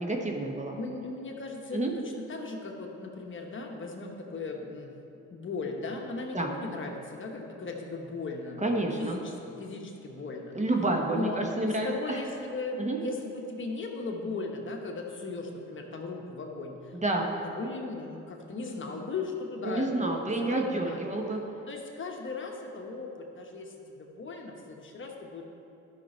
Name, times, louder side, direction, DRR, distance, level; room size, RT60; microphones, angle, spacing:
voice 1, 0.0-0.8 1.7-1.9 6.3-6.5 8.6-9.2 10.5-12.2 12.8-13.0 16.9-17.3 19.6-21.4, right 2 dB, 25° right, 2 dB, 1.1 m, -29 dB
voice 2, 0.7-2.0 2.3-5.0 5.3-10.5 11.1-16.9 17.2-21.0 21.7-25.4, left 3 dB, 40° left, 1 dB, 1.2 m, -37 dB
12.0 x 6.0 x 4.4 m, 2.9 s
cardioid pair, 90°, 30 cm